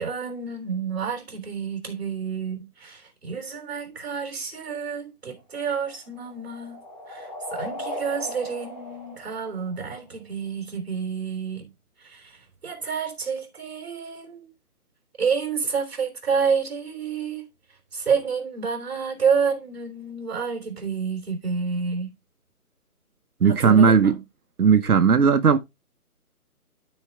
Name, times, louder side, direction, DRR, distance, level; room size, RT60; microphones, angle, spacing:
voice 1, 0.0-6.8 7.1-11.7 12.0-14.5 15.2-17.5 17.9-22.1 23.4-24.2, right 6 dB, 45° right, 3.5 m, -29 dB
sound 1, 5.4-10.1, equal, 20° left, 3.0 m, -37 dB
voice 2, 23.4-24.1 24.6-25.6, right 6 dB, 85° right, 1.1 m, -16 dB
13.0 x 4.5 x 3.5 m
hypercardioid pair, 180°, 44 cm